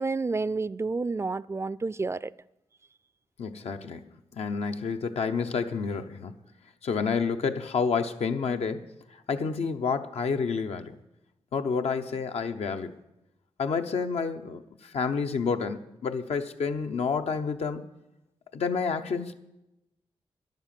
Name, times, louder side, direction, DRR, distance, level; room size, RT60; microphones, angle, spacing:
voice 1, 0.0-2.3, right 3 dB, 25° right, 0.3 m, -30 dB
voice 2, 3.4-6.3 6.8-11.0 11.5-12.9 13.6-17.8 18.5-19.3, left 5 dB, 85° left, 0.8 m, -29 dB
10.5 x 9.1 x 7.5 m
cardioid pair, 65°, 10 cm